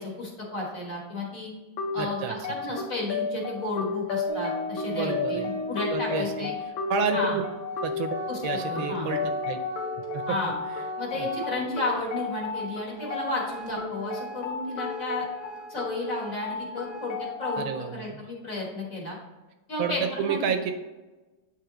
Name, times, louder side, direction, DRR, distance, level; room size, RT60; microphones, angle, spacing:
voice 1, 0.0-1.5 1.9-6.5 7.1-7.4 8.3-8.4 8.7-9.1 10.3-10.5 11.0-15.2 15.7-19.2 19.7-20.5, left 2 dB, 45° left, -3 dB, 1.7 m, -32 dB
sound 1, 1.8-17.8, left 4 dB, 75° left, 1.7 m, -34 dB
voice 2, 2.0-2.3 4.9-5.5 5.9-6.5 6.9-7.4 7.8-8.1 8.4-9.2 9.5-9.6 9.9-10.4 11.1-11.3 17.6-18.3 19.8-20.7, right 7 dB, 75° right, 7 dB, 1.3 m, -30 dB
Organ, 4.3-6.5 7.3-7.4 7.6-12.0 12.4-12.5 12.9-17.3, left 1 dB, 25° left, 0.6 m, -37 dB
8.7 x 3.5 x 3.8 m, 1.2 s
omnidirectional pair, 2.3 m